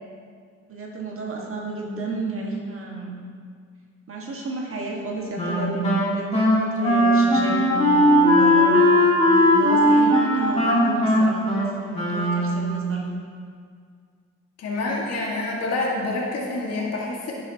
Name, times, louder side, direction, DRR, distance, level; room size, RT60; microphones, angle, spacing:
voice 1, 0.7-3.2 4.1-13.0, right 2 dB, 45° right, -1 dB, 1.6 m, -31 dB
Wind instrument woodwind instrument, 5.4-12.8, equal, 20° left, 2.4 m, -18 dB
voice 2, 14.6-17.3, left 2 dB, 55° left, -3 dB, 1.7 m, -27 dB
11.0 x 8.1 x 2.8 m, 2.1 s
cardioid pair, 90°, 30 cm